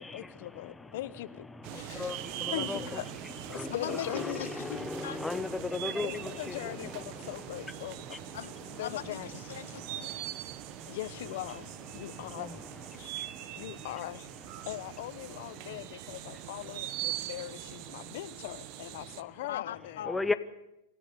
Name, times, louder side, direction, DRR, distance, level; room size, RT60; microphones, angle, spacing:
voice 1, 0.0-1.4 1.7-2.2 2.5-3.2 3.5-4.4 6.0-9.8 10.8-12.6 13.0-13.1 13.6-14.3 14.7-20.0, left 15 dB, 60° left, 1.0 m, -41 dB
sound 1, 1.6-19.2, right 14 dB, 45° right, 1.2 m, -42 dB
voice 2, 3.7-5.2 8.3-8.5 8.8-10.2 11.9-12.1 19.5-20.3, left 10 dB, 80° left, 1.2 m, -40 dB
voice 3, 5.2-6.1 20.1-20.3, left 3 dB, 5° left, 1.0 m, -31 dB
26.5 x 14.0 x 9.5 m
supercardioid pair, 140°, 0 cm